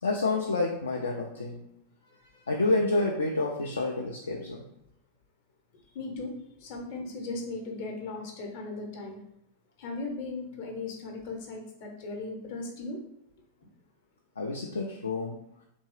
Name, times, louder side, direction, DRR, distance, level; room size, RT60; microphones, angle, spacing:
voice 1, 0.0-1.6 2.5-4.6 14.4-15.4, left 2 dB, 75° left, 0 dB, 0.3 m, -29 dB
voice 2, 2.0-2.5 3.6-3.8 5.8-6.3 6.6-9.2 9.8-13.0, left 3 dB, 50° left, 1 dB, 0.7 m, -38 dB
2.9 x 2.6 x 3.1 m, 0.77 s
figure-of-eight pair, 90°, 0 cm